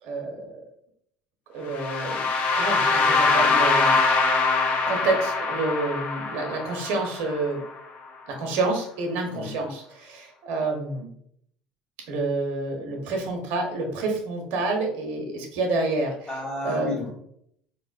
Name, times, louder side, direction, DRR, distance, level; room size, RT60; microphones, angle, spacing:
voice 1, 0.0-0.6 1.5-2.2 2.5-3.9 4.9-7.6 8.3-11.1 12.1-16.3 16.6-17.1, right 3 dB, 70° right, 2 dB, 0.8 m, -28 dB
sound 1, 1.7-7.7, left 4 dB, 55° left, 0.6 m, -23 dB
voice 2, 9.3-9.6 16.3-17.1, left 2 dB, 30° left, -7 dB, 1.4 m, -32 dB
3.6 x 3.0 x 2.4 m, 0.69 s
hypercardioid pair, 70°, 3 cm